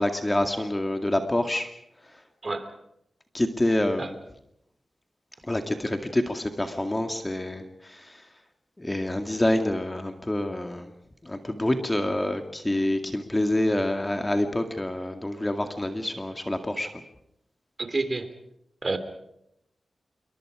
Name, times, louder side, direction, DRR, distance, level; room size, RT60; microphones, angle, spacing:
voice 1, 0.0-1.7 3.3-4.1 5.5-8.2 8.8-10.9 11.2-16.9, left 1 dB, 20° left, 6 dB, 2.1 m, -27 dB
voice 2, 17.8-18.3 18.8-19.0, right 3 dB, 40° right, 10 dB, 3.2 m, -28 dB
27.5 x 23.5 x 4.9 m, 0.78 s
wide cardioid pair, 85°, 0 cm